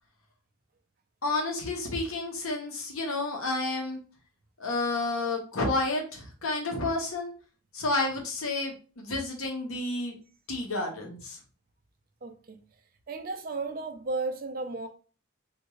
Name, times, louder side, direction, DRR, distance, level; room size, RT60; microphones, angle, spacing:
voice 1, 1.2-4.0 4.6-7.3 7.7-10.2 10.5-11.4, left 2 dB, 75° left, 1.0 m, -30 dB
voice 2, 12.2-12.6 13.1-14.9, right 3 dB, 40° right, 0.4 m, -34 dB
3.5 x 2.6 x 3.1 m
head